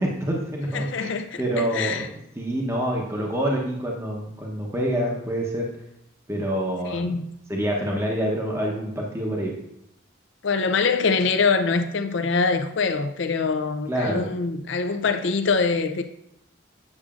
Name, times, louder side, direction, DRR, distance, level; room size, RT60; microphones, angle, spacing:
voice 1, 0.0-2.1 2.4-5.7 6.3-7.1 7.5-9.5 13.9-14.3, right 1 dB, 15° right, 0.8 m, -26 dB
voice 2, 0.7-2.1 6.8-7.3 10.4-16.0, left 4 dB, 65° left, 0.5 m, -24 dB
8.6 x 6.3 x 2.4 m
head